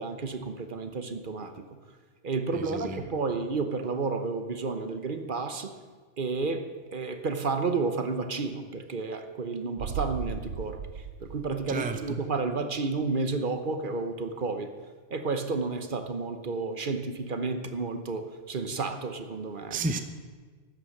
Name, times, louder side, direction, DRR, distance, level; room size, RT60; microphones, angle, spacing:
voice 1, 0.0-1.5 2.2-5.7 6.2-14.7 15.1-19.8, right 4 dB, 45° right, 8 dB, 1.0 m, -31 dB
voice 2, 2.5-3.0 11.7-12.2 19.7-20.0, right 3 dB, 10° right, 8 dB, 0.4 m, -32 dB
sound 1, 9.8-12.5 12.8-12.9, right 7 dB, 85° right, 1.1 m, -37 dB
13.0 x 9.1 x 6.5 m, 1.5 s
omnidirectional pair, 1.2 m